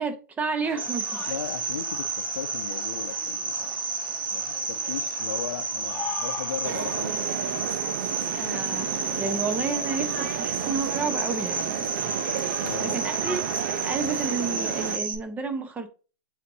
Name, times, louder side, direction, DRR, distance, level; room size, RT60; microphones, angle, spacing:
voice 1, 0.0-1.3 8.3-11.9 12.8-15.9, right 4 dB, 15° right, 1.0 m, -31 dB
sound 1, 0.6-14.5, left 7 dB, 20° left, 1.1 m, -44 dB
Cricket, 0.8-15.2, right 4 dB, 85° right, 1.4 m, -31 dB
voice 2, 1.3-3.7 4.3-7.2 12.6-13.0 13.3-13.4, left 8 dB, 75° left, 0.7 m, -36 dB
sound 2, 6.6-15.0, right 10 dB, 55° right, 0.6 m, -32 dB
8.1 x 4.4 x 2.8 m
hypercardioid pair, 135°, 11 cm